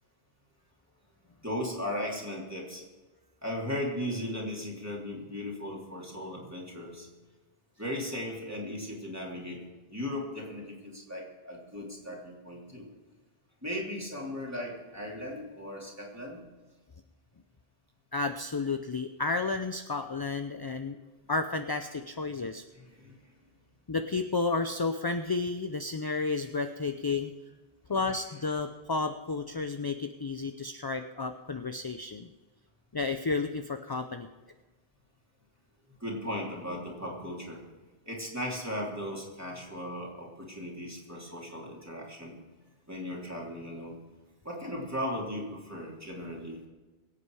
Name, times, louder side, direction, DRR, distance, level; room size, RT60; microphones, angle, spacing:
voice 1, 1.4-2.8 3.4-7.1 7.8-9.6 9.9-12.9 13.6-16.4 22.7-23.1 28.0-28.1 36.0-37.6 38.1-42.4 42.9-44.0 44.4-46.6, left 1 dB, 15° right, -3 dB, 3.1 m, -37 dB
voice 2, 18.1-21.0 21.3-22.6 23.9-27.3 27.9-32.3 32.9-34.3, left 3 dB, 35° left, 8 dB, 0.4 m, -32 dB
22.5 x 8.4 x 4.8 m, 1.3 s
omnidirectional pair, 1.1 m